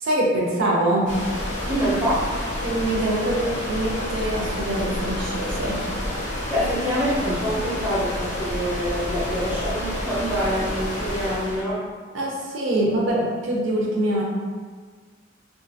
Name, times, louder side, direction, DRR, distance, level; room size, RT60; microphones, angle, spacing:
voice 1, 0.0-1.1 2.6-5.8 12.1-13.2 13.4-14.2, right 1 dB, 90° right, -3 dB, 0.6 m, -24 dB
sound 1, 1.1-11.6, left 1 dB, 40° left, 0.6 m, -29 dB
voice 2, 1.7-2.3 6.5-11.8, equal, 10° right, -9 dB, 0.7 m, -25 dB
2.5 x 2.4 x 2.6 m, 1.5 s
head